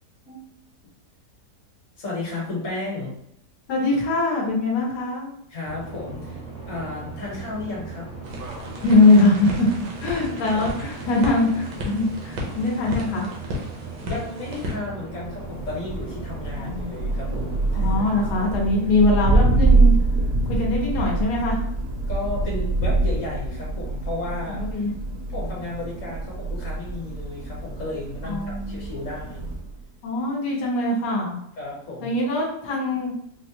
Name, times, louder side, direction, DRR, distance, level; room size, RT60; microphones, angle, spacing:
voice 1, 2.0-3.1 5.5-6.4 6.6-8.1 10.5-10.6 14.0-18.0 22.1-24.6 25.3-29.6 31.6-32.1, left 2 dB, 50° left, -5 dB, 1.6 m, -33 dB
voice 2, 3.7-5.3 8.8-9.7 10.0-13.3 16.6-16.9 17.7-19.9 20.4-21.6 24.5-24.9 28.2-28.9 30.0-31.4 32.0-33.1, left 2 dB, 80° left, -2 dB, 1.5 m, -22 dB
sound 1, 5.6-18.6, right 4 dB, 50° right, 0.4 m, -38 dB
sound 2, 8.2-14.7, left 1 dB, 90° right, 1.4 m, -34 dB
Thunder, 15.3-29.8, right 2 dB, 65° right, 0.8 m, -24 dB
4.1 x 2.2 x 2.9 m, 0.72 s
omnidirectional pair, 1.7 m